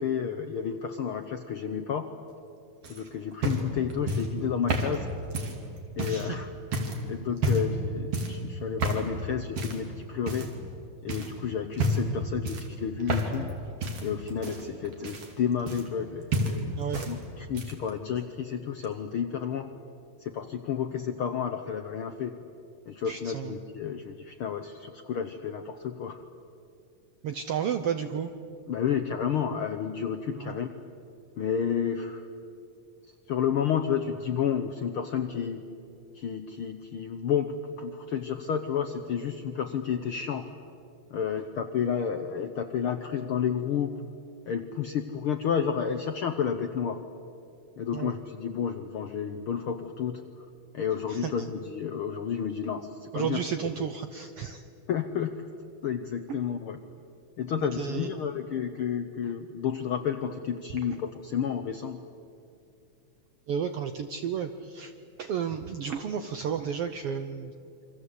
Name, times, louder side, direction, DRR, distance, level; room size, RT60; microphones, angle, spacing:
voice 1, 0.0-2.1 2.9-5.1 6.0-6.5 7.0-10.5 11.0-13.5 14.0-19.7 20.2-22.3 22.9-26.2 28.7-30.7 31.4-32.3 33.3-35.6 36.1-40.5 41.1-44.0 44.5-47.0 47.8-50.4 50.7-53.4 54.9-55.5 55.8-56.8 57.4-62.0, left 7 dB, 70° left, 7 dB, 1.3 m, -31 dB
sound 1, 2.8-6.3 6.7-7.0 7.4-7.8 8.1-8.4 8.8-9.1 9.6-9.9 10.3-10.8 11.1-11.3 11.7-12.1 12.4-13.5 13.8-16.1 16.3-17.1 17.4-17.9 18.8-18.9, right 1 dB, 50° right, 3.5 m, -30 dB
voice 2, 23.1-23.5 27.2-28.3 30.4-30.5 47.9-48.1 51.1-51.5 53.1-54.6 56.3-56.4 57.6-58.1 63.5-64.9 65.2-67.5, right 8 dB, 70° right, 8 dB, 1.4 m, -32 dB
28.5 x 24.5 x 8.2 m, 2.6 s
omnidirectional pair, 3.6 m